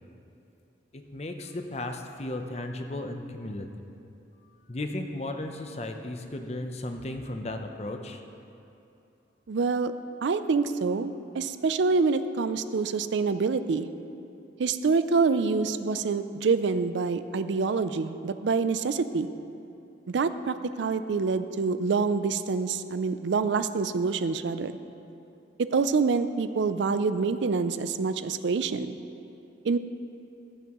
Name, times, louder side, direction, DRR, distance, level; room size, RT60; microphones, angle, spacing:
voice 1, 0.9-3.7 4.7-8.2, left 1 dB, 35° left, 5 dB, 0.7 m, -35 dB
voice 2, 9.5-9.9 10.2-13.9 14.6-19.3 20.1-24.7 25.6-29.0 29.6-29.8, right 4 dB, 75° right, 12 dB, 0.4 m, -26 dB
15.0 x 10.5 x 3.0 m, 2.7 s
head